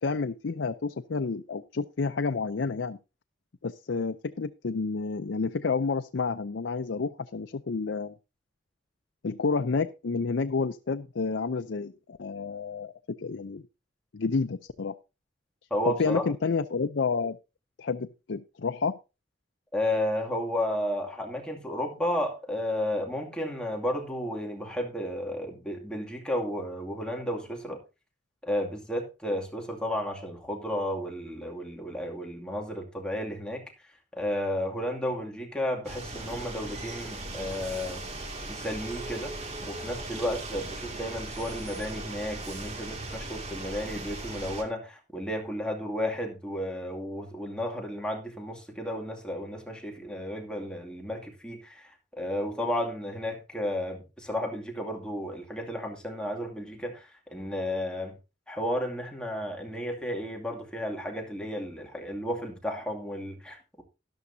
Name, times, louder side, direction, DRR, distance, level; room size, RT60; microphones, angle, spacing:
voice 1, 0.0-3.0 3.6-8.1 9.2-12.9 13.2-13.6 14.1-14.9 15.8-17.4 17.8-18.9, left 4 dB, 90° left, 0.6 m, -30 dB
voice 2, 15.7-16.3 19.7-27.8 28.4-33.6 34.1-38.0 38.5-58.2 58.5-63.8, left 1 dB, 5° left, 2.4 m, -33 dB
sound 1, 35.8-44.6, right 2 dB, 35° right, 2.3 m, -38 dB
13.0 x 12.0 x 2.7 m
head